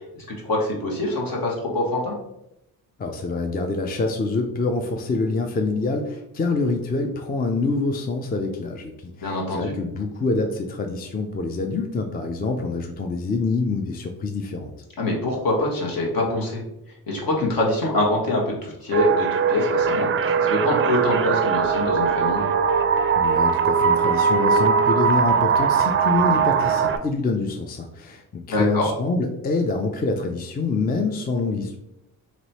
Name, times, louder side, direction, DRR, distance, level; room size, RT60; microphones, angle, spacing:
voice 1, 0.4-2.1 9.2-9.7 15.0-16.6 17.1-20.1 20.4-22.5 28.5-28.9, left 1 dB, 60° left, -2 dB, 1.5 m, -24 dB
voice 2, 3.0-14.7 23.2-31.8, left 3 dB, 25° left, 4 dB, 0.4 m, -26 dB
sound 1, 18.9-27.0, right 6 dB, 35° right, 0.4 m, -20 dB
3.1 x 3.0 x 4.1 m, 0.84 s
cardioid pair, 75°, 39 cm